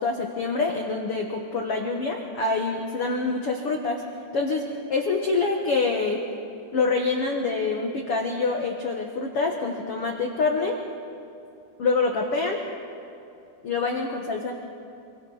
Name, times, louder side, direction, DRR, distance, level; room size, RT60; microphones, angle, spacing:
voice 1, 0.0-4.0 4.3-6.2 6.7-10.8 11.8-12.6 13.6-14.5, left 3 dB, 80° left, 1 dB, 1.3 m, -26 dB
29.0 x 23.0 x 4.0 m, 2.7 s
omnidirectional pair, 4.7 m